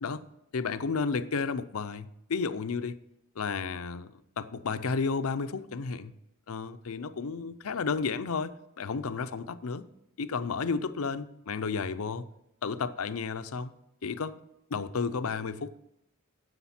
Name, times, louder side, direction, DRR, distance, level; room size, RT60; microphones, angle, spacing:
voice 1, 0.5-3.0 3.4-6.1 6.5-9.8 10.2-12.3 12.6-13.7 14.0-14.4 14.7-15.7, left 5 dB, 65° left, 0.6 m, -32 dB
10.0 x 7.9 x 4.3 m
head